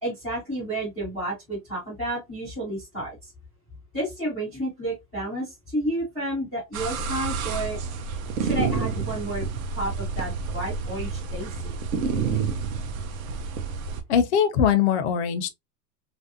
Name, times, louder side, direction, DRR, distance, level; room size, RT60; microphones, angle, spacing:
voice 1, 0.0-3.3 3.9-7.8 8.4-9.5 9.7-11.7, right 1 dB, 5° right, 0.3 m, -31 dB
sound 1, 6.7-14.0, right 5 dB, 60° right, 0.7 m, -29 dB
voice 2, 14.1-15.5, left 8 dB, 45° left, 0.6 m, -21 dB
3.0 x 2.6 x 2.6 m
supercardioid pair, 175°, 47 cm